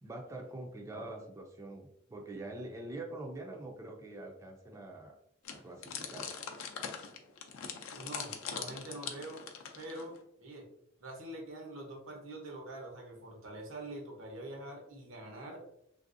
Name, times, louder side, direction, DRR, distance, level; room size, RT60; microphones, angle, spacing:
voice 1, 0.0-5.2 5.5-6.3, right 2 dB, 15° right, 1 dB, 0.3 m, -44 dB
sound 1, 5.4-10.2, left 7 dB, 90° left, 0.5 m, -42 dB
voice 2, 7.9-9.4 9.8-10.7 11.0-15.7, right 1 dB, 85° right, 1 dB, 0.9 m, -45 dB
3.3 x 2.6 x 2.5 m, 0.74 s
head